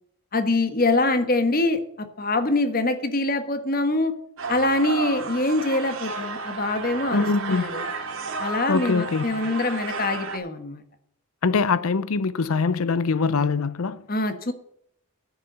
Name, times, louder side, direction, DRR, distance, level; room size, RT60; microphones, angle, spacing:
voice 1, 0.3-4.1 4.5-7.9 8.4-10.8 14.1-14.5, left 2 dB, 40° left, 1.3 m, -24 dB
sound 1, 4.4-10.4, right 4 dB, 65° right, 2.2 m, -32 dB
voice 2, 7.1-7.7 8.7-9.2 11.4-14.0, left 4 dB, 75° left, 0.5 m, -23 dB
10.0 x 6.9 x 7.7 m
head